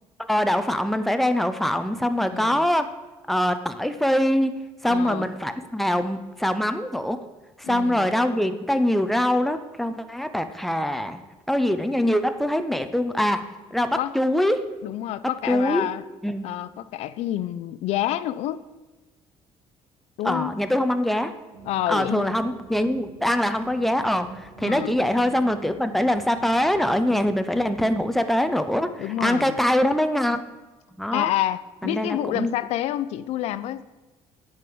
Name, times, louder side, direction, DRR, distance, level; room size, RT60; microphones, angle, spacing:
voice 1, 0.3-2.9 3.3-4.5 4.8-7.2 7.6-11.2 11.5-14.6 15.5-15.9 16.2-16.5 20.2-21.3 21.9-30.4 31.0-31.3 31.8-32.5, left 1 dB, ahead, 9 dB, 0.5 m, -23 dB
voice 2, 2.3-2.6 4.9-5.3 7.6-8.1 13.9-14.1 14.8-16.0 16.4-18.6 20.2-20.5 21.6-22.4 24.6-24.9 29.0-29.6 31.1-33.8, left 13 dB, 70° left, 16 dB, 0.4 m, -28 dB
Howling Wind Loop, 21.5-28.0, right 6 dB, 55° right, 2.1 m, -46 dB
8.7 x 5.3 x 7.7 m, 1.2 s
cardioid pair, 155°, 11 cm